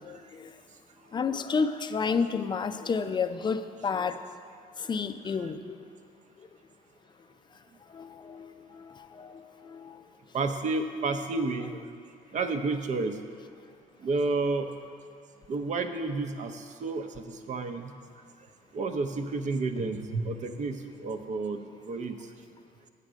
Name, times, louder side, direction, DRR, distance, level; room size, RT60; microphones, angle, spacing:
voice 1, 0.1-0.5 1.1-4.2 4.9-5.8 7.9-8.5 9.2-10.0, left 5 dB, 25° left, 10 dB, 0.5 m, -30 dB
voice 2, 10.3-11.7 12.3-13.1 14.0-14.7 15.5-17.1 17.5-17.9 18.7-22.1, right 3 dB, 45° right, 7 dB, 0.8 m, -30 dB
8.3 x 7.4 x 6.2 m, 2.3 s
cardioid pair, 110°, 17 cm